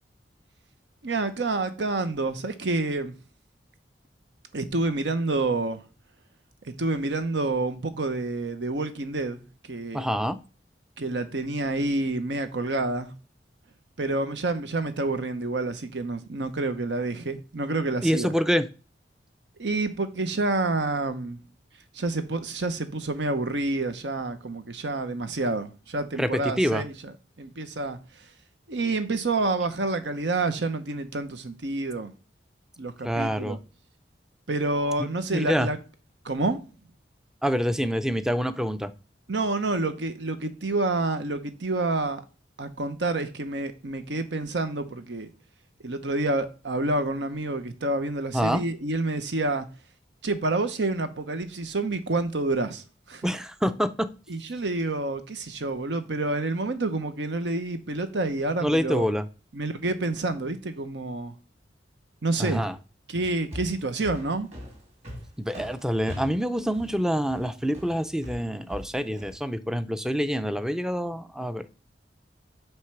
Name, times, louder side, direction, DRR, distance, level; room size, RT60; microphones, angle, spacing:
voice 1, 1.0-3.1 4.5-5.8 6.8-9.4 9.7-10.0 11.0-13.1 14.0-18.3 19.6-21.4 21.9-27.1 27.4-28.0 28.7-32.1 32.8-33.6 34.5-35.8 36.2-36.6 39.3-42.2 42.6-45.3 45.8-49.7 50.2-53.3 54.3-59.1 59.5-61.3 62.2-62.6 63.1-64.5, right 2 dB, 80° right, 0.9 m, -28 dB
voice 2, 9.9-10.4 18.0-18.7 26.2-26.8 33.0-33.6 35.0-35.7 37.4-38.9 48.3-48.6 53.2-54.1 58.6-59.3 62.4-62.7 65.4-71.7, equal, 5° right, 0.4 m, -26 dB
sound 1, 63.1-69.4, left 1 dB, 40° right, 2.6 m, -41 dB
8.0 x 3.2 x 5.9 m
head